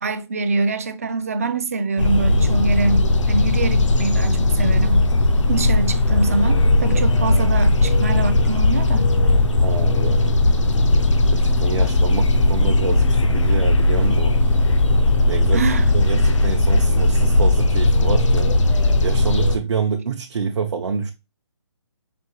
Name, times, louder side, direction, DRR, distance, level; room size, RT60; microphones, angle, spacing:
voice 1, 0.0-5.1 5.5-9.1 15.5-15.9, right 3 dB, 30° right, 0.3 m, -24 dB
sound 1, 2.0-19.6, left 2 dB, 90° left, 0.7 m, -17 dB
voice 2, 9.6-10.2 11.3-14.4 15.3-15.6 15.9-18.5 19.0-21.1, right 5 dB, 65° right, 0.6 m, -27 dB
5.1 x 2.7 x 2.8 m
hypercardioid pair, 170°, 15 cm